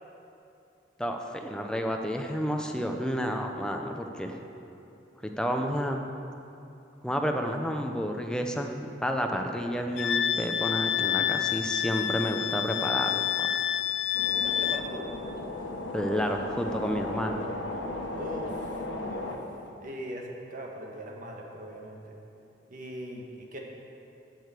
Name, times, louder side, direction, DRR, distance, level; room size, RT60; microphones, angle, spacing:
voice 1, 1.0-4.4 5.2-6.0 7.0-13.3 15.9-17.4, equal, 5° left, 3 dB, 0.7 m, -30 dB
Wind instrument woodwind instrument, 10.0-14.9, left 10 dB, 70° left, 0.4 m, -28 dB
sound 1, 14.1-19.4, left 2 dB, 85° left, 1.2 m, -36 dB
voice 2, 14.4-15.1 18.2-19.3 19.8-22.1 22.7-23.6, equal, 45° right, 0 dB, 1.4 m, -40 dB
8.0 x 6.8 x 8.3 m, 2.7 s
head